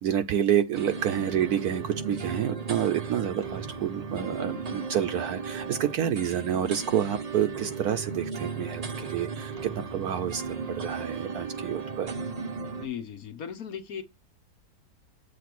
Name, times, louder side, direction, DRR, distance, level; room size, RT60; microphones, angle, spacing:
voice 1, 0.0-12.1, right 9 dB, 70° right, 1.1 m, -28 dB
sound 1, 0.7-12.9, right 5 dB, 40° right, 0.6 m, -35 dB
voice 2, 12.8-14.0, left 8 dB, 65° left, 1.3 m, -37 dB
7.6 x 3.2 x 6.0 m
omnidirectional pair, 1.8 m